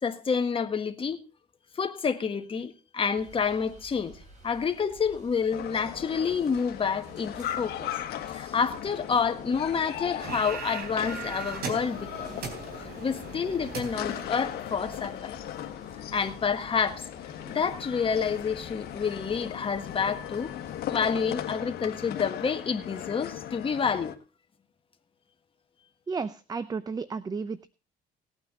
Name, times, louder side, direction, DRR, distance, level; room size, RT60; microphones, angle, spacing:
voice 1, 0.0-1.2 1.8-4.2 4.4-7.9 8.3-12.4 13.0-15.4 16.1-17.1 17.4-20.5 20.9-24.1, left 6 dB, 30° left, 1.6 m, -28 dB
sound 1, 3.1-21.5, right 2 dB, 45° right, 5.8 m, -52 dB
sound 2, 5.5-24.1, left 11 dB, 70° left, 1.5 m, -38 dB
sound 3, 10.2-15.1, right 5 dB, 65° right, 3.9 m, -39 dB
voice 2, 26.1-27.7, right 5 dB, 20° right, 0.6 m, -33 dB
18.5 x 9.1 x 3.9 m
cardioid pair, 110°, 17 cm